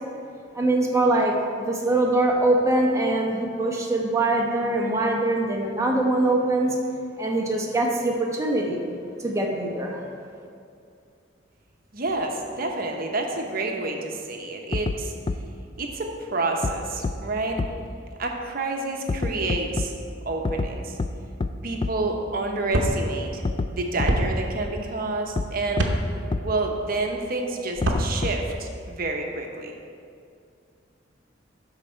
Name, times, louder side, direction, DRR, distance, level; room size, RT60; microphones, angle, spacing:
voice 1, 0.5-6.8 7.2-8.8 9.2-10.0, right 2 dB, 15° right, -1 dB, 1.1 m, -23 dB
voice 2, 11.9-15.1 15.8-17.6 18.2-19.9 20.3-21.0 21.6-23.4 23.7-25.9 26.4-29.7, right 2 dB, 50° right, 2 dB, 1.0 m, -29 dB
sound 1, 14.7-15.0 15.3-15.4 16.6-16.7 17.0-17.1 17.6-17.7 19.1-19.9 20.5-20.7 21.0-21.1 21.4-21.5 21.8-21.9 23.5-23.7 24.0-24.1 25.4-25.5 25.8-25.9 26.3-26.4 27.8-28.5, left 3 dB, 30° left, 0.3 m, -25 dB
sound 2, 22.7-22.9 24.1-24.2 25.7-26.0 27.7-28.1, right 1 dB, 80° right, 0.9 m, -22 dB
12.5 x 4.9 x 4.5 m, 2.3 s
head